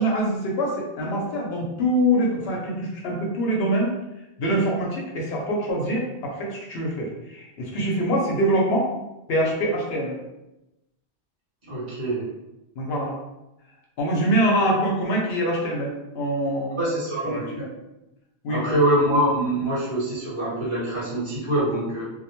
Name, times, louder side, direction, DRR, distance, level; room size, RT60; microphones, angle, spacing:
voice 1, 0.0-3.9 4.4-8.9 9.3-10.2 12.8-13.1 14.0-16.9 17.2-17.4 18.4-18.7, right 1 dB, 70° left, -1 dB, 0.8 m, -24 dB
voice 2, 11.6-12.3 16.8-17.7 18.5-22.0, right 1 dB, 50° right, -8 dB, 1.0 m, -24 dB
2.2 x 2.0 x 2.9 m, 0.94 s
omnidirectional pair, 1.1 m